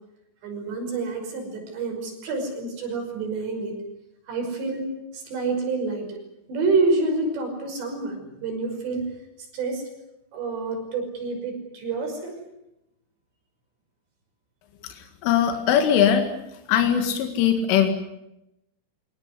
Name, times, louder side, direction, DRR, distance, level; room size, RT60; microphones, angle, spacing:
voice 1, 0.4-3.8 4.3-6.2 6.5-9.1 9.5-9.8 10.3-12.4, right 3 dB, 60° right, 3 dB, 7.8 m, -28 dB
voice 2, 14.8-16.3 16.7-17.9, left 9 dB, 75° left, 5 dB, 4.4 m, -21 dB
25.0 x 19.0 x 9.8 m, 0.87 s
omnidirectional pair, 5.8 m